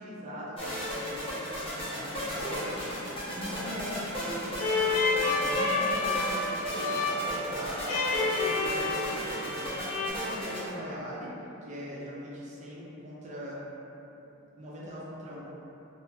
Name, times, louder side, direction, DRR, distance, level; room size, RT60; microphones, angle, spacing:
voice 1, 0.0-7.8 8.2-11.3 11.6-13.6 14.6-15.5, equal, 35° right, -6 dB, 0.5 m, -41 dB
sound 1, 0.6-10.7, equal, 25° left, 0.8 m, -35 dB
sound 2, 4.6-10.1, left 3 dB, 90° left, 0.4 m, -29 dB
2.8 x 2.7 x 2.2 m, 2.9 s
head